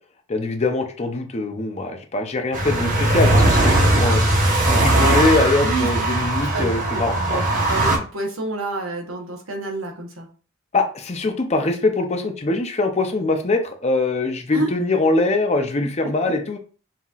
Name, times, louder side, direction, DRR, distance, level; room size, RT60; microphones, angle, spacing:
voice 1, 0.3-4.2 4.7-7.4 10.7-16.6, left 2 dB, 30° left, 5 dB, 0.6 m, -22 dB
sound 1, 2.5-8.0, right 1 dB, 40° right, 1.0 m, -19 dB
voice 2, 6.5-10.3 14.5-14.7, right 2 dB, 85° right, 2 dB, 1.1 m, -28 dB
5.6 x 2.9 x 2.4 m, 0.38 s
head